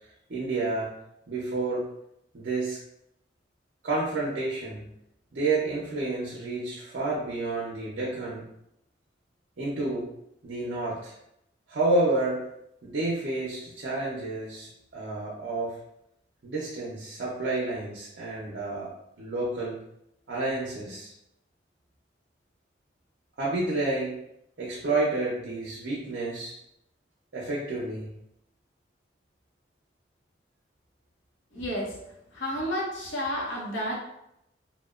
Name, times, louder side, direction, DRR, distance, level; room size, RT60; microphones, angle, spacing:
voice 1, 0.3-0.9 1.3-1.8 2.3-2.8 3.8-4.9 5.3-8.4 9.6-10.1 10.4-11.1 11.7-12.4 12.8-15.8 16.4-18.9 19.2-19.8 20.3-21.1 23.4-24.1 24.6-26.5 27.3-28.1, right 2 dB, 60° right, -4 dB, 0.5 m, -29 dB
voice 2, 31.5-32.0 32.3-34.0, equal, 80° left, -2 dB, 0.7 m, -31 dB
2.8 x 2.1 x 2.3 m, 0.80 s
head